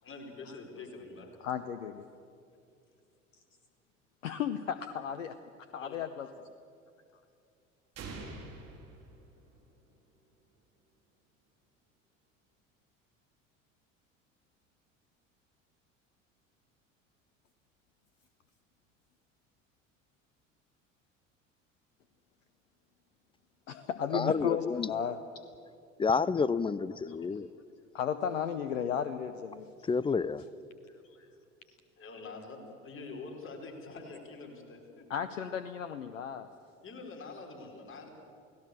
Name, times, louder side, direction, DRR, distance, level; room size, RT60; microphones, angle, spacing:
voice 1, 0.0-1.3 5.8-5.9 32.0-35.0 36.8-38.1, left 3 dB, 30° left, 1 dB, 4.9 m, -45 dB
voice 2, 1.4-2.0 4.2-5.4 5.7-6.3 23.7-25.4 27.1-27.2 27.9-29.7 31.1-31.3 35.1-36.5, left 8 dB, 75° left, 11 dB, 0.9 m, -34 dB
sound 1, 8.0-9.9, right 3 dB, 40° right, 4.7 m, -46 dB
voice 3, 24.1-24.9 26.0-27.5 29.9-30.4, left 5 dB, 15° left, 20 dB, 0.5 m, -29 dB
29.0 x 17.5 x 7.0 m, 2.5 s
figure-of-eight pair, 65°, 39 cm